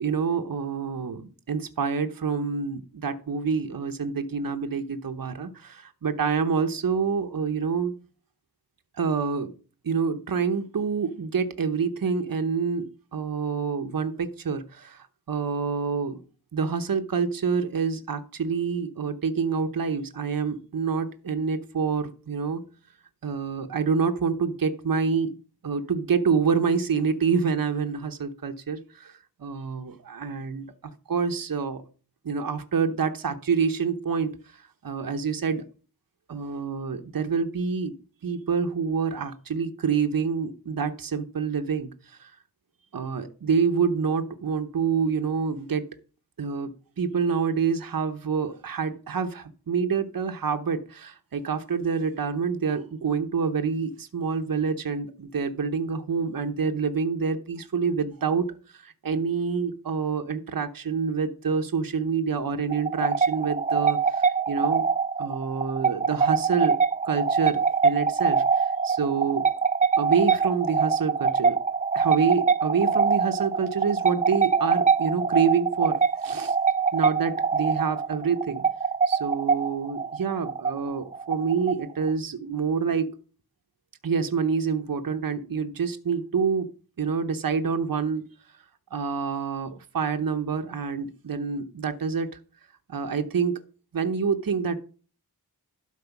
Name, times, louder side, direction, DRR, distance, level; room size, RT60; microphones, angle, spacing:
voice 1, 0.0-7.9 9.0-9.5 9.8-16.2 16.5-22.6 23.2-25.4 25.6-30.7 31.1-31.8 32.2-35.6 36.3-37.9 38.2-42.3 42.9-45.9 46.4-46.7 47.0-64.9 65.2-66.8 67.0-69.4 70.0-71.6 71.9-76.6 76.9-78.6 79.1-83.2 84.0-86.7 87.0-88.3 88.9-92.4 92.9-93.6 93.9-94.8, right 5 dB, 60° right, 7 dB, 0.9 m, -27 dB
sound 1, 62.7-82.1, right 5 dB, 20° right, 0.4 m, -24 dB
12.0 x 4.6 x 5.9 m, 0.37 s
wide cardioid pair, 75°, 38 cm